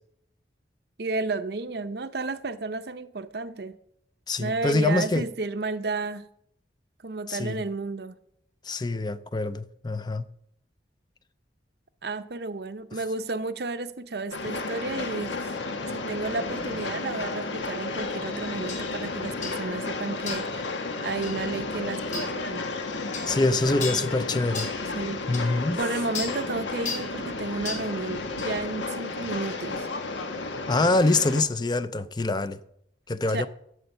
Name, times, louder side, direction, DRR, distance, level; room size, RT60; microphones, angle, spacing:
voice 1, 1.0-3.8 4.4-6.3 7.0-8.1 12.0-15.5 15.9-20.7 21.0-22.7 24.9-25.2 25.8-29.9 33.3-33.5, right 3 dB, 60° right, 0.7 m, -32 dB
voice 2, 4.3-5.2 7.3-7.6 8.6-10.2 23.3-24.7 25.3-25.8 30.7-32.6 33.1-33.5, left 2 dB, 25° left, 0.5 m, -25 dB
Train, 14.3-31.4, left 3 dB, 85° left, 1.4 m, -32 dB
sound 1, 18.7-18.8 19.4-19.6 20.3-20.5 21.2-21.4 22.1-22.3 23.1-23.3 23.8-24.1 24.5-24.8 25.3-25.4 26.1-26.4 26.8-27.1 27.6-27.9 28.4-28.5, left 5 dB, 40° left, 2.6 m, -34 dB
13.0 x 7.9 x 6.6 m
head